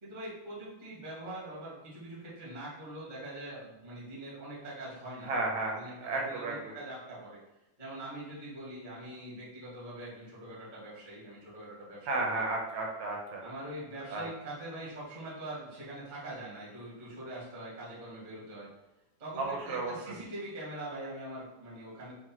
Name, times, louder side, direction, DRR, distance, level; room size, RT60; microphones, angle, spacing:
voice 1, 0.0-5.3 5.8-7.4 7.8-12.4 13.4-18.7 19.2-22.1, right 1 dB, 45° right, -7 dB, 0.5 m, -43 dB
voice 2, 5.2-6.8 12.1-13.4 14.1-14.3 19.4-20.2, right 2 dB, 75° right, 0 dB, 1.8 m, -33 dB
5.9 x 2.2 x 2.9 m, 0.97 s
omnidirectional pair, 3.6 m